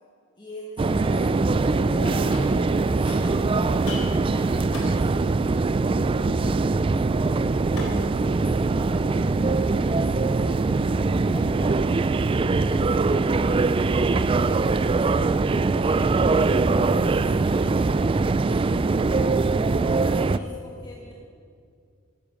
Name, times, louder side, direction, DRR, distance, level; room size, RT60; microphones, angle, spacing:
voice 1, 0.4-2.4 3.0-7.5 7.8-10.7 11.3-12.1 12.5-14.5 14.8-16.6 17.0-18.6 19.8-21.1, left 1 dB, 20° left, -3 dB, 1.4 m, -43 dB
sound 1, 0.8-20.4, right 3 dB, 25° right, 0.3 m, -22 dB
voice 2, 1.0-2.7 19.1-20.5 21.0-21.1, equal, 45° left, -2 dB, 4.4 m, -39 dB
sound 2, 2.3-2.8 3.1-10.0, left 2 dB, 75° left, 4.3 m, -42 dB
12.0 x 12.0 x 7.6 m, 2.3 s
head